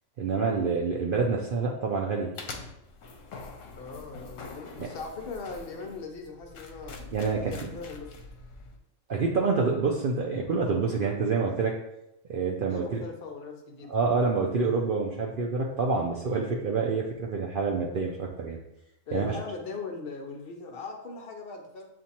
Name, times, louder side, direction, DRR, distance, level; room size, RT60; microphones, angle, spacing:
voice 1, 0.2-2.3 7.1-7.7 9.1-11.7 12.3-12.8 13.9-18.6 19.1-19.4, right 4 dB, 65° right, -1 dB, 0.5 m, -27 dB
sound 1, 2.3-8.8, left 4 dB, 75° left, 1.0 m, -44 dB
voice 2, 3.8-7.0 7.3-8.1 12.6-13.9 19.1-21.9, left 4 dB, 55° left, 3 dB, 0.7 m, -40 dB
7.2 x 2.5 x 2.8 m, 0.86 s
omnidirectional pair, 1.3 m